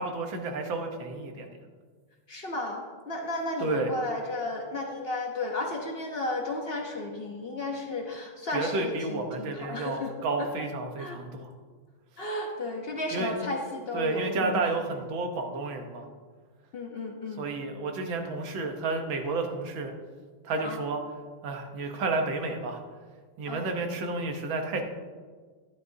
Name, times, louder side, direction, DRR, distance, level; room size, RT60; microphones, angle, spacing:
voice 1, 0.0-1.6 3.6-3.9 8.5-11.5 13.1-13.3 13.9-16.1 17.4-19.9 20.4-21.0 21.4-22.8 23.4-24.8, right 3 dB, 65° right, 4 dB, 1.7 m, -31 dB
voice 2, 2.3-10.1 10.4-10.5 11.0-11.2 12.2-14.7 16.7-17.5 20.6-20.8 23.5-23.7, left 2 dB, 75° left, 1 dB, 0.5 m, -33 dB
12.0 x 11.0 x 2.7 m, 1.5 s
omnidirectional pair, 2.4 m